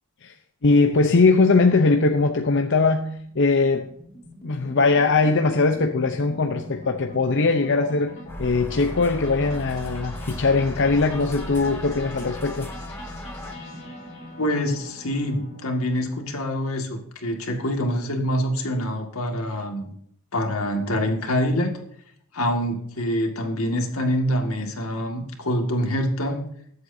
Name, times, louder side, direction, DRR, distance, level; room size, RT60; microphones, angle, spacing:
voice 1, 0.6-3.9 4.4-8.1 8.4-12.7, left 3 dB, 60° left, 4 dB, 0.8 m, -20 dB
sound 1, 2.1-16.3, left 1 dB, 30° left, 3.6 m, -42 dB
sound 2, 8.3-13.5, equal, 10° left, 0.7 m, -36 dB
voice 2, 14.4-19.9 20.3-21.8 22.3-26.4, equal, 85° left, 2 dB, 2.0 m, -25 dB
21.5 x 8.0 x 2.7 m, 0.68 s
head